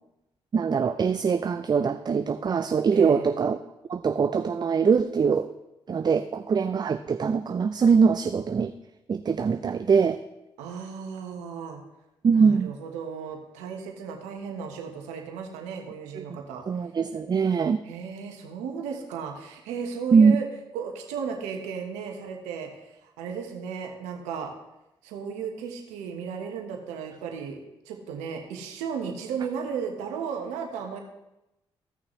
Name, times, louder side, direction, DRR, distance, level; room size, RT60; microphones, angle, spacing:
voice 1, 0.5-3.6 3.9-5.5 5.9-8.7 9.1-10.2 12.2-12.7 16.2-16.3 16.7-17.8 20.1-20.4, right 5 dB, 35° right, 9 dB, 0.5 m, -22 dB
voice 2, 2.9-3.3 10.6-11.8 12.3-16.6 17.8-20.5 20.7-22.7 23.0-24.5 25.0-27.6 27.8-31.0, right 6 dB, 85° right, 3 dB, 1.2 m, -35 dB
15.5 x 6.1 x 3.2 m, 0.91 s
hypercardioid pair, 45°, 12 cm